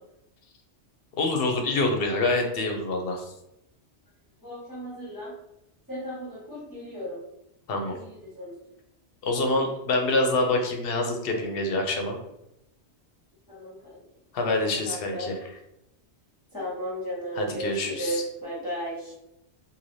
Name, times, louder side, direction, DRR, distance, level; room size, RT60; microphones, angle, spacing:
voice 1, 1.2-3.3 7.7-7.9 9.2-12.2 14.3-15.4 17.4-18.2, left 2 dB, 65° left, 3 dB, 0.8 m, -26 dB
voice 2, 4.4-5.3 5.9-7.2 7.9-8.5 13.5-14.0 14.4-14.6 14.9-15.3 16.5-19.1, equal, 20° left, -8 dB, 0.9 m, -35 dB
3.1 x 2.6 x 2.6 m, 0.85 s
omnidirectional pair, 1.2 m